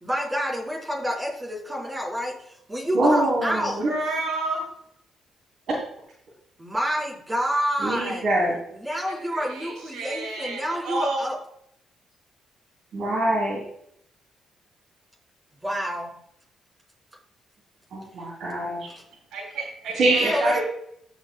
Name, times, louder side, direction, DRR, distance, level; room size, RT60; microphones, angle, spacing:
voice 1, 0.0-3.9 6.6-8.2 8.8-11.4 15.6-16.2 20.3-20.5, equal, 20° right, -2 dB, 3.8 m, -28 dB
voice 2, 2.9-3.9 5.7-5.8 7.8-8.5 12.9-13.6 17.9-18.9 19.9-20.6, right 1 dB, 65° right, -4 dB, 2.7 m, -23 dB
voice 3, 3.8-4.6 8.9-9.0 9.3-11.2 19.3-20.6, right 2 dB, 85° right, -1 dB, 3.8 m, -31 dB
17.5 x 6.2 x 2.2 m, 0.71 s
cardioid pair, 90°, 0 cm